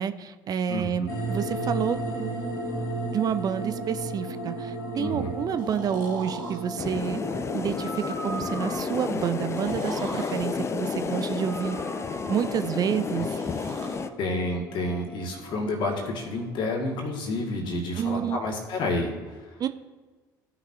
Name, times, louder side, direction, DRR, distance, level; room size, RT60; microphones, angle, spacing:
voice 1, 0.0-2.4 3.1-7.2 7.5-11.8 12.3-13.4 18.0-18.4 19.6-19.7, right 8 dB, 40° right, 11 dB, 0.4 m, -29 dB
voice 2, 0.7-1.1 4.9-5.3 14.2-19.5, left 2 dB, 50° left, 1 dB, 1.8 m, -30 dB
sound 1, 1.1-16.9, right 1 dB, 70° left, 2.6 m, -36 dB
Breathing, 5.6-6.6 7.7-8.9 9.5-10.4 11.3-12.6 13.2-14.0, right 2 dB, 80° right, 1.5 m, -39 dB
sound 2, 6.8-14.1, left 5 dB, 30° left, 0.5 m, -31 dB
15.0 x 5.9 x 2.7 m, 1.4 s
figure-of-eight pair, 55°, 10 cm